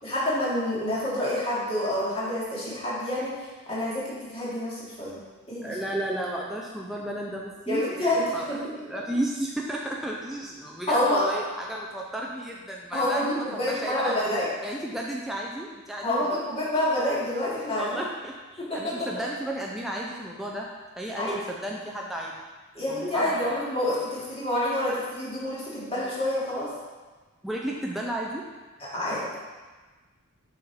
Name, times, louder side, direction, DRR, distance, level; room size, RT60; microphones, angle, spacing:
voice 1, 0.0-3.3 3.7-5.2 5.5-5.8 7.7-8.6 10.9-11.3 12.9-14.5 16.0-18.0 18.6-19.0 21.2-21.4 22.7-26.7 28.9-29.4, left 1 dB, 30° left, -8 dB, 2.4 m, -27 dB
voice 2, 5.6-8.6 8.9-14.3 14.6-16.4 17.7-20.7 21.0-22.3 22.9-23.4 27.4-28.5, right 1 dB, ahead, -3 dB, 0.5 m, -33 dB
6.8 x 5.6 x 4.3 m, 1.3 s
head